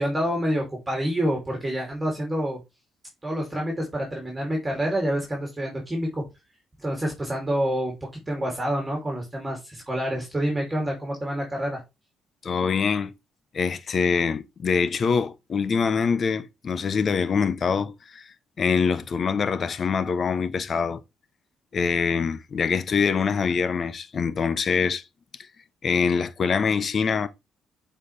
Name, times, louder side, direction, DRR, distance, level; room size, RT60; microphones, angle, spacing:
voice 1, 0.0-2.6 3.2-6.2 6.8-7.9 8.3-11.8, equal, 15° right, 2.6 m, -27 dB
voice 2, 12.4-13.1 13.5-21.0 21.7-25.0 25.8-27.3, left 5 dB, 50° left, 0.8 m, -24 dB
7.6 x 4.4 x 3.2 m
cardioid pair, 90°, 0 cm